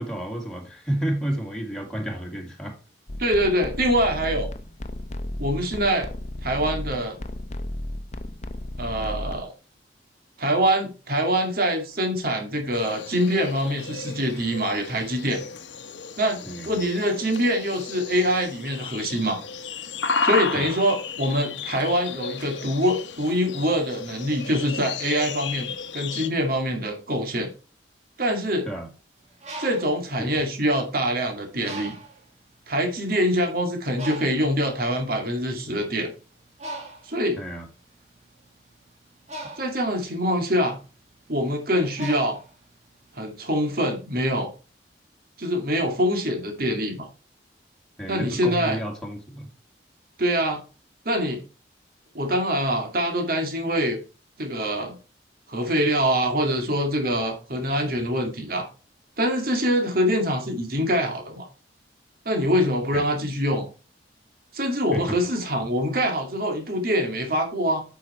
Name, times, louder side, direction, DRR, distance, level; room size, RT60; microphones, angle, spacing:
voice 1, 0.0-2.8 16.4-16.8 20.5-20.7 28.7-28.9 30.2-30.3 37.4-37.7 48.0-49.5 62.9-63.1 64.9-65.2, right 1 dB, 5° left, 0 dB, 2.0 m, -31 dB
sound 1, 3.1-9.4, left 1 dB, 40° left, 0.8 m, -34 dB
voice 2, 3.2-4.5 5.4-6.1 6.4-7.2 8.8-9.5 10.4-15.4 16.2-19.4 20.2-27.5 28.2-28.7 29.6-31.9 32.7-36.1 37.1-37.4 39.6-40.8 41.3-42.4 43.2-44.5 45.4-47.1 48.1-48.8 50.2-50.6 51.1-51.4 52.1-54.0 54.4-55.0 55.5-58.7 59.2-61.5 62.3-63.7 64.5-67.8, equal, 55° right, 3 dB, 2.3 m, -24 dB
sound 2, 12.7-26.3, left 5 dB, 90° left, 1.0 m, -33 dB
Bird, 29.2-31.1 31.6-32.3 33.0-33.1 33.4-43.1, right 2 dB, 40° right, 2.1 m, -40 dB
8.5 x 6.0 x 4.3 m, 0.34 s
head